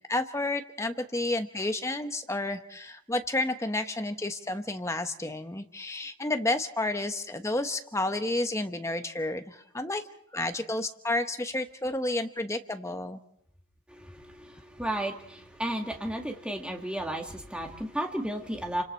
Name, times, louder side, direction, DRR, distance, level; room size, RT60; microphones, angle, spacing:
voice 1, 0.1-10.0 10.3-13.2, left 2 dB, 15° left, 7 dB, 1.1 m, -31 dB
voice 2, 13.9-18.8, right 1 dB, 5° right, 2 dB, 2.1 m, -33 dB
29.0 x 25.5 x 4.5 m, 0.71 s
head